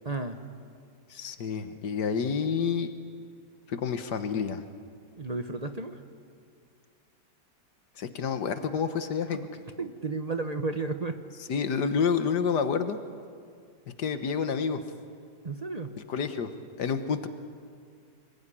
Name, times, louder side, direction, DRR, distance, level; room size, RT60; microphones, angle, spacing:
voice 1, 0.0-0.4 5.2-6.0 9.8-11.2 15.4-16.0, right 3 dB, 25° right, 7 dB, 1.0 m, -32 dB
voice 2, 1.1-2.9 3.7-4.6 8.0-9.4 11.5-13.0 14.0-14.8 16.1-16.5 16.8-17.3, left 6 dB, 70° left, 9 dB, 1.8 m, -29 dB
25.0 x 21.5 x 10.0 m, 2.2 s
omnidirectional pair, 1.9 m